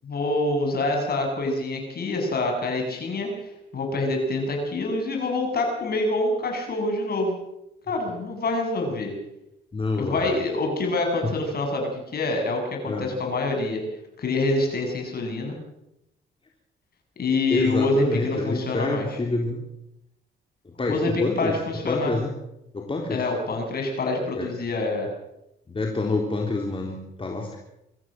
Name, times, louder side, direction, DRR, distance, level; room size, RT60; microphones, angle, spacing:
voice 1, 0.0-7.3 7.9-9.1 10.0-13.8 14.2-15.6 17.2-19.1 20.9-22.1 23.1-25.1, left 2 dB, 50° left, 2 dB, 7.7 m, -26 dB
voice 2, 9.7-10.4 11.2-11.3 12.9-13.1 17.5-19.6 20.7-21.5 21.9-22.3 22.7-23.2 24.3-24.5 25.7-27.6, left 3 dB, 25° left, 1 dB, 3.7 m, -27 dB
24.0 x 14.0 x 7.8 m, 0.85 s
cardioid pair, 90°, 20 cm